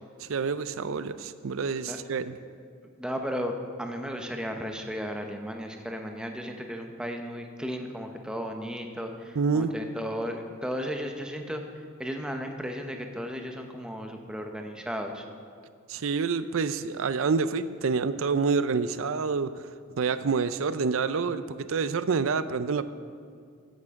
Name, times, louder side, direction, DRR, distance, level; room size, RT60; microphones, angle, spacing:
voice 1, 0.2-2.4 9.4-9.7 15.9-19.5 20.0-22.8, right 5 dB, 70° right, 13 dB, 0.5 m, -27 dB
voice 2, 3.0-15.2, equal, 5° right, 3 dB, 0.8 m, -35 dB
15.5 x 9.6 x 3.6 m, 2.2 s
head